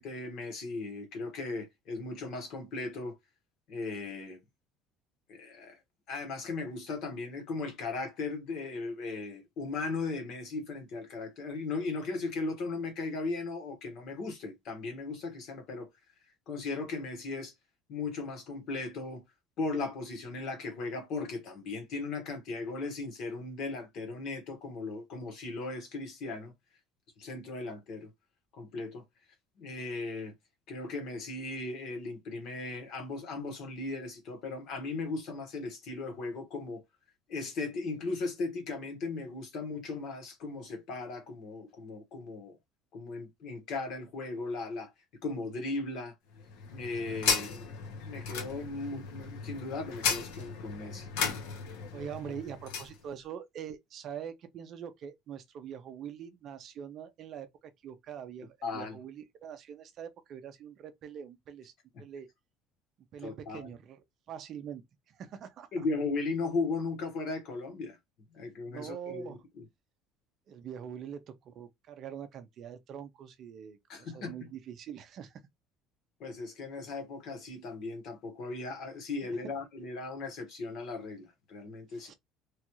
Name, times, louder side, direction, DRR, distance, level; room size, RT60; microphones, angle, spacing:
voice 1, 0.0-3.2 3.7-4.4 5.3-5.8 6.1-15.9 16.5-17.5 17.9-19.2 19.6-26.5 27.2-28.1 28.6-29.0 29.6-30.3 30.7-36.8 37.3-42.5 42.9-44.9 45.2-46.1 46.7-47.7 48.0-51.1 58.6-59.0 61.9-62.0 63.2-63.7 65.7-68.0 68.3-69.4 73.9-74.3 76.2-82.1, left 3 dB, 50° left, 1.2 m, -37 dB
sound 1, 46.4-53.0, left 6 dB, 90° left, 0.9 m, -35 dB
voice 2, 51.9-61.7 62.0-62.3 63.1-65.8 68.7-69.4 70.5-75.4 81.9-82.1, right 8 dB, 40° right, 0.5 m, -44 dB
3.0 x 2.4 x 3.0 m
cardioid pair, 170°, 0 cm